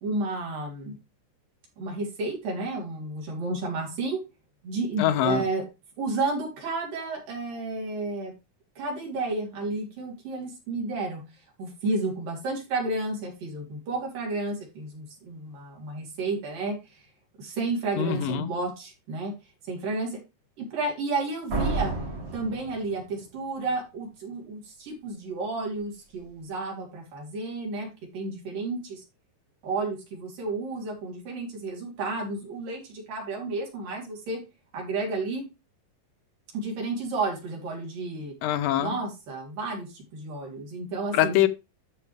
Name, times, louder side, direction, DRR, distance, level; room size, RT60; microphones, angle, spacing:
voice 1, 0.0-1.0 1.8-4.2 4.6-5.6 6.0-8.3 8.8-11.2 11.6-17.0 17.4-19.3 19.7-20.2 20.6-21.9 22.3-27.9 28.1-29.0 29.6-34.4 34.7-35.5 36.5-38.3 38.8-41.4, right 3 dB, 80° right, 5.1 m, -31 dB
voice 2, 5.0-5.5 18.0-18.5 38.4-39.0 41.1-41.5, left 11 dB, 85° left, 2.5 m, -23 dB
Slam, 21.5-23.4, right 3 dB, 55° right, 4.9 m, -30 dB
13.0 x 5.0 x 3.3 m
omnidirectional pair, 3.9 m